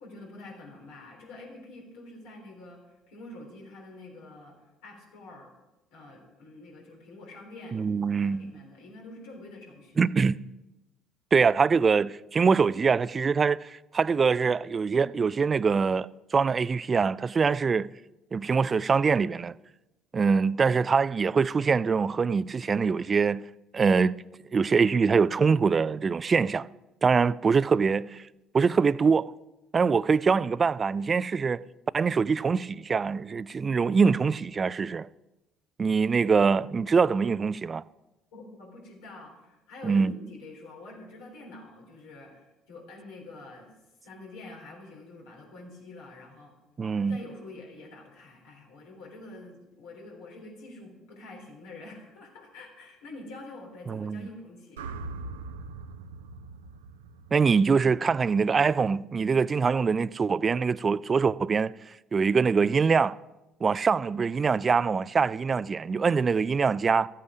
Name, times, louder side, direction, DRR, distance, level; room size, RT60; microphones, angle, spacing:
voice 1, 0.0-5.5 5.9-7.9 8.1-10.1 38.3-43.7 44.0-46.5 47.0-55.0, left 2 dB, 75° left, 3.5 m, -46 dB
voice 2, 7.7-8.6 10.0-10.4 11.3-17.9 18.3-19.5 20.1-23.4 23.7-24.1 24.5-26.7 27.0-28.2 28.5-29.3 29.7-31.6 31.9-35.1 35.8-37.8 39.8-40.1 46.8-47.2 53.9-54.3 57.3-61.7 62.1-63.2 63.6-67.1, right 5 dB, 35° right, 0.3 m, -24 dB
sound 1, 54.8-59.0, right 3 dB, 90° right, 0.5 m, -42 dB
13.5 x 8.6 x 4.9 m
hypercardioid pair, 60°, 0 cm